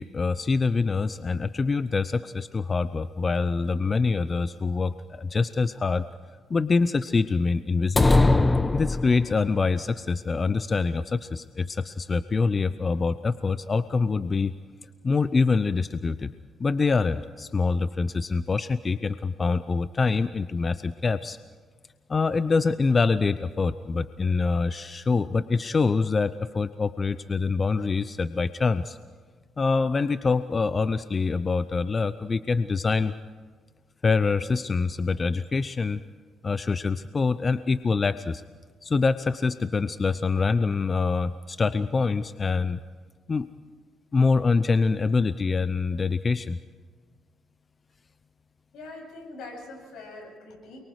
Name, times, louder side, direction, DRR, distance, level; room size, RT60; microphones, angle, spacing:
voice 1, 0.0-6.1 6.5-8.2 8.7-14.5 15.0-16.3 16.6-21.4 22.1-29.0 29.6-33.1 34.0-36.0 36.4-38.4 38.8-42.8 43.3-43.5 44.1-46.6, left 4 dB, 35° left, 13 dB, 0.6 m, -25 dB
sound 1, 8.0-9.6, left 2 dB, 20° left, 1.0 m, -20 dB
voice 2, 48.7-50.8, left 2 dB, 80° left, 2 dB, 8.0 m, -42 dB
28.5 x 23.0 x 4.8 m, 1.5 s
cardioid pair, 90°, 0 cm